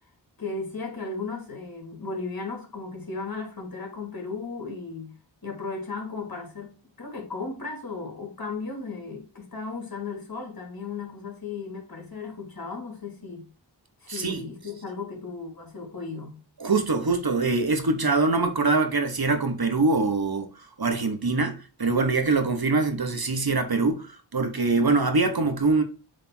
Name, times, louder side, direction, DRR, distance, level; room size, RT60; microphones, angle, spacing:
voice 1, 0.4-5.1 5.4-13.5 14.0-16.4, left 4 dB, 50° left, 2.7 m, -35 dB
voice 2, 14.1-14.4 16.6-20.5 20.8-25.8, right 3 dB, 55° right, 1.3 m, -23 dB
7.6 x 3.6 x 4.4 m
wide cardioid pair, 45°, 45 cm